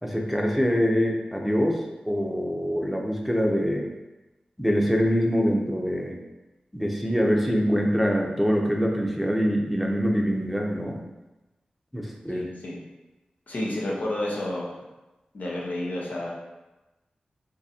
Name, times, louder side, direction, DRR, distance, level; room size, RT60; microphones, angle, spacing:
voice 1, 0.0-3.9 4.6-6.2 6.7-11.0 11.9-12.5, equal, ahead, 0 dB, 0.7 m, -24 dB
voice 2, 12.3-12.8 13.5-14.7 15.3-16.3, left 1 dB, 70° left, -4 dB, 0.9 m, -30 dB
3.8 x 2.7 x 2.7 m, 1.1 s
cardioid pair, 45°, 3 cm